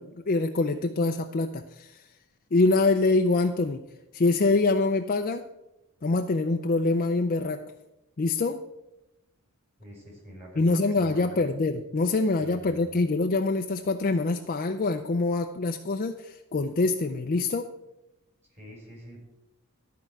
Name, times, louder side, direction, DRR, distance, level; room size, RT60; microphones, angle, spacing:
voice 1, 0.0-2.0 2.5-3.8 4.1-5.4 6.0-7.6 8.2-8.6 10.6-17.7, left 3 dB, 40° left, 5 dB, 0.5 m, -25 dB
voice 2, 9.8-11.4 12.4-12.9 18.6-19.2, equal, 30° right, -2 dB, 4.1 m, -46 dB
13.0 x 4.6 x 7.6 m, 0.92 s
head